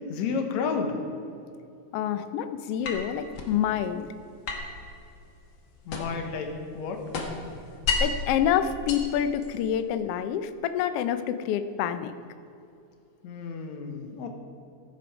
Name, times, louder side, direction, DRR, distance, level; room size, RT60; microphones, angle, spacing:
voice 1, 0.1-1.0 5.9-7.0 13.2-14.3, left 5 dB, 70° left, 4 dB, 2.3 m, -31 dB
voice 2, 1.9-4.1 8.0-12.1, left 9 dB, 85° left, 10 dB, 1.3 m, -27 dB
sound 1, 2.8-3.6 4.5-6.3 6.6-8.3 8.7-9.8, left 4 dB, 50° left, 1.7 m, -32 dB
15.5 x 8.4 x 4.8 m, 2.6 s
omnidirectional pair, 3.4 m